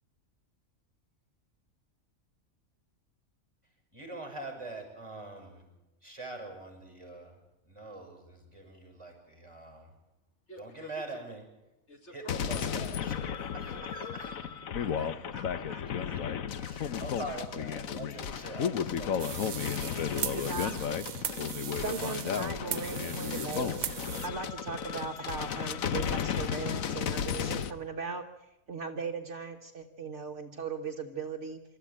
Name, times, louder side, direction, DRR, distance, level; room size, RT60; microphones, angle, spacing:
voice 1, 3.9-5.6 6.0-7.3 7.6-9.9 10.6-11.4 12.1-14.4 14.8-14.9 16.6-19.5, right 2 dB, 20° right, 3 dB, 6.8 m, -44 dB
voice 2, 10.5-11.0 11.9-12.8 13.7-14.2 15.0-16.2 16.8-17.4 19.7-20.8, left 4 dB, 55° left, 6 dB, 2.3 m, -50 dB
sound 1, 12.3-27.7, left 8 dB, 80° left, 1.4 m, -33 dB
sound 2, 19.2-24.3, right 8 dB, 85° right, 1.4 m, -38 dB
voice 3, 20.3-20.8 21.8-23.9 24.2-31.6, right 5 dB, 60° right, 4 dB, 1.6 m, -38 dB
27.0 x 13.5 x 8.7 m, 0.98 s
omnidirectional pair, 1.4 m